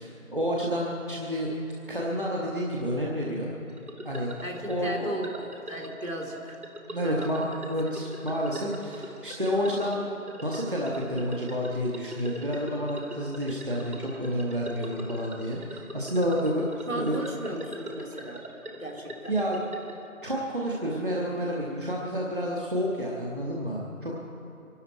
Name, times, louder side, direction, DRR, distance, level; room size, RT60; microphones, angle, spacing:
voice 1, 0.0-1.5 1.9-3.5 4.0-4.3 4.7-5.1 6.9-10.1 10.4-16.6 16.9-17.2 19.3-19.6 20.2-24.1, equal, 35° right, -4 dB, 1.5 m, -29 dB
sound 1, 3.7-20.1, equal, 80° right, 2.5 m, -43 dB
voice 2, 4.4-5.3 5.7-6.6 7.0-7.5 16.9-18.4 18.7-19.3, right 1 dB, 60° right, 1 dB, 2.9 m, -36 dB
24.0 x 12.0 x 4.6 m, 2.8 s
figure-of-eight pair, 175°, 43 cm